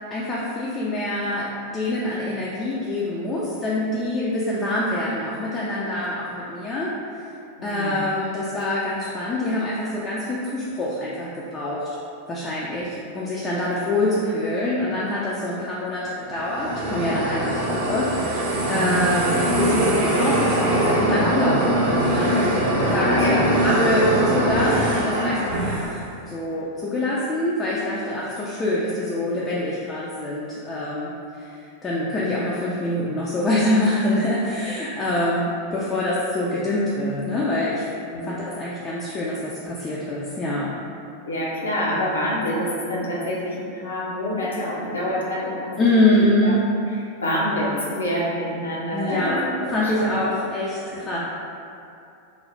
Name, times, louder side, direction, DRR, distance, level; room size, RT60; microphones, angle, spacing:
voice 1, 0.1-6.9 7.6-11.9 12.3-22.6 22.8-26.0 26.3-31.1 31.4-37.8 38.2-40.7 45.8-46.6 48.9-49.4 49.7-51.2, left 1 dB, 25° left, -6 dB, 0.3 m, -25 dB
voice 2, 7.6-8.0 12.7-13.0 23.0-23.5 38.1-38.3 41.2-45.7 46.4-46.5 47.2-50.2 50.9-51.2, equal, 70° left, -6 dB, 0.6 m, -27 dB
sound 1, 16.3-26.1, right 1 dB, 55° right, 0.6 m, -22 dB
2.5 x 2.0 x 3.1 m, 2.7 s
figure-of-eight pair, 90°, 0 cm